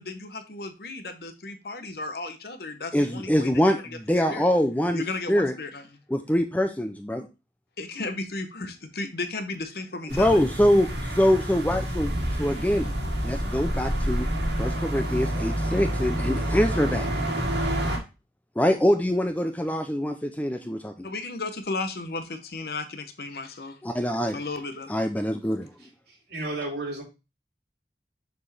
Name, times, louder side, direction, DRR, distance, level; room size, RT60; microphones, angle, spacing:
voice 1, 0.0-3.5 3.8-4.5 4.9-5.8 7.8-10.4 21.0-23.8 24.3-24.9, left 3 dB, 60° left, 8 dB, 0.9 m, -34 dB
voice 2, 2.9-3.8 4.1-5.5 6.1-7.3 10.1-12.9 13.2-14.3 14.6-17.1 18.6-21.1 23.8-24.4 24.9-25.7, equal, 10° left, 7 dB, 0.4 m, -24 dB
sound 1, 10.1-18.0, equal, 85° right, 1.8 m, -29 dB
sound 2, 12.2-15.0, equal, 85° left, 1.5 m, -32 dB
voice 3, 26.1-27.0, right 2 dB, 65° right, -1 dB, 2.8 m, -33 dB
6.9 x 4.4 x 3.2 m, 0.28 s
head